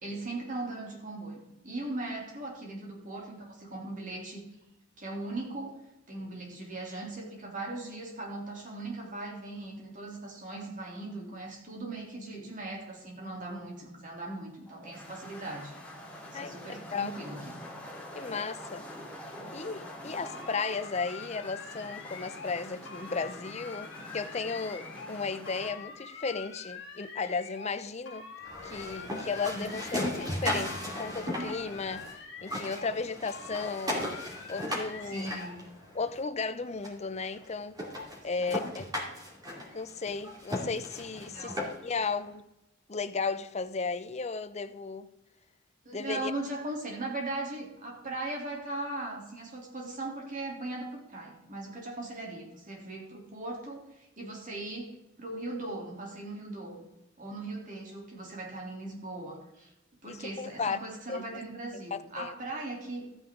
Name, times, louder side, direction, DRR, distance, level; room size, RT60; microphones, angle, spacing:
voice 1, 0.0-4.5 5.0-5.8 6.1-15.7 16.3-17.6 29.5-29.8 35.1-35.6 38.4-38.6 41.3-41.6 45.8-56.8 57.2-59.7 60.0-63.1, right 2 dB, 40° right, 3.2 m, -39 dB
sound 1, 14.7-25.7, left 1 dB, 5° left, 2.3 m, -45 dB
voice 2, 16.3-17.1 18.1-18.9 19.5-28.3 28.6-32.1 32.4-34.1 34.5-35.3 35.9-37.8 38.2-38.9 39.7-41.5 41.8-42.4 42.9-45.1 45.9-46.3 60.1-60.8 61.1-61.2 61.9-62.3, left 4 dB, 35° left, 0.6 m, -35 dB
sound 2, 20.3-22.6 22.9-25.2 25.5-27.8 28.1-30.4 30.7-33.0 33.3-35.6, left 5 dB, 60° left, 2.2 m, -46 dB
sound 3, 28.4-32.1 32.4-36.2 36.8-36.9 37.4-37.5 37.8-42.0, left 1 dB, 20° right, 2.5 m, -36 dB
13.5 x 9.0 x 3.8 m
head